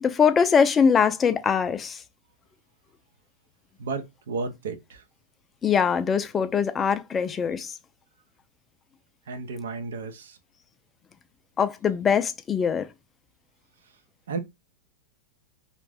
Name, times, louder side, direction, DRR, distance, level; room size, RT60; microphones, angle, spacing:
voice 1, 0.0-2.0 5.6-7.8 11.6-12.9, left 6 dB, 20° left, 0.3 m, -22 dB
voice 2, 3.8-5.0 9.3-10.4 14.3-14.4, right 4 dB, 85° right, 0.5 m, -33 dB
2.4 x 2.1 x 3.3 m
supercardioid pair, 140°, 0 cm